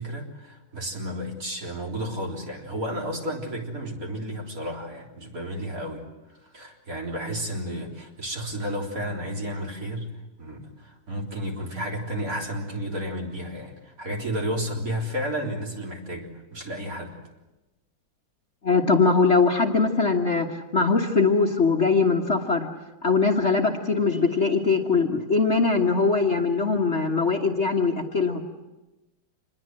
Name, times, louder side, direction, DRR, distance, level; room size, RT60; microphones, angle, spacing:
voice 1, 0.0-6.1 6.3-10.1 10.4-17.2, equal, 45° right, 0 dB, 4.2 m, -32 dB
voice 2, 18.6-20.5 20.7-22.7 23.0-28.4, left 4 dB, 35° left, 1 dB, 1.6 m, -21 dB
27.0 x 21.0 x 7.7 m, 1.0 s
omnidirectional pair, 2.2 m